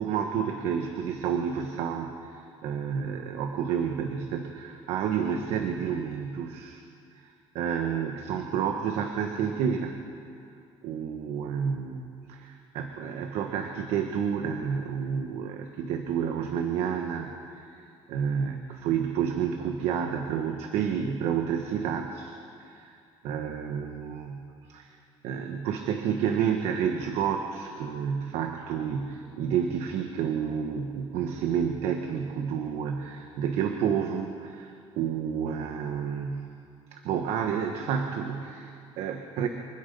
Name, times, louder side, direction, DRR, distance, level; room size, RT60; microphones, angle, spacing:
voice 1, 0.0-6.8 7.2-9.9 10.8-22.3 22.6-23.0 23.2-24.9 25.2-36.5 36.9-39.5, right 7 dB, 85° right, 4 dB, 1.4 m, -30 dB
25.0 x 20.5 x 5.4 m, 2.4 s
cardioid pair, 130°, 10 cm